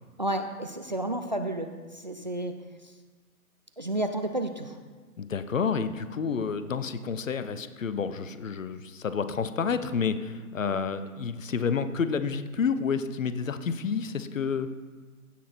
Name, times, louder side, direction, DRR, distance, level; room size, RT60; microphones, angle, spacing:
voice 1, 0.2-2.5 3.8-4.8, right 1 dB, 35° right, 7 dB, 0.4 m, -31 dB
voice 2, 5.2-14.7, left 6 dB, 60° left, 12 dB, 0.8 m, -29 dB
15.5 x 6.1 x 4.4 m, 1.4 s
figure-of-eight pair, 130°, 45 cm